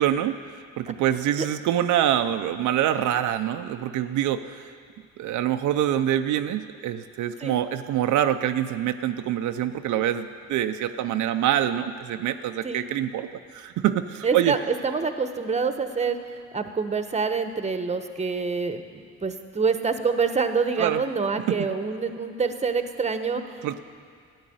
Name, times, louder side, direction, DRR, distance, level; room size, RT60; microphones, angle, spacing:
voice 1, 0.0-4.7 5.2-13.3 13.5-14.5 20.8-21.0 21.4-21.6 23.6-23.8, right 11 dB, 75° right, 8 dB, 0.6 m, -25 dB
voice 2, 14.2-16.2 16.5-23.8, right 5 dB, 25° right, 8 dB, 0.9 m, -26 dB
13.5 x 9.6 x 7.8 m, 2.1 s
cardioid pair, 90°, 30 cm